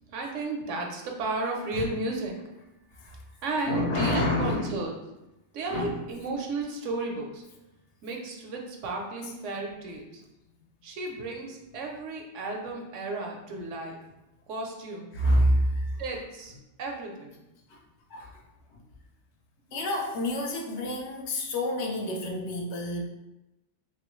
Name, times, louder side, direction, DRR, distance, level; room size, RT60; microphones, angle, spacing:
voice 1, 0.1-2.4 3.4-4.9 5.5-7.4 8.0-10.2 10.8-14.0 14.5-15.1 16.0-16.5 16.8-17.4, right 2 dB, 80° right, 1 dB, 1.0 m, -33 dB
voice 2, 3.7-4.7 5.7-5.9 15.1-15.9 18.1-18.3 19.7-23.0, left 1 dB, 70° left, 0 dB, 0.9 m, -27 dB
3.0 x 3.0 x 3.0 m, 0.96 s
omnidirectional pair, 1.3 m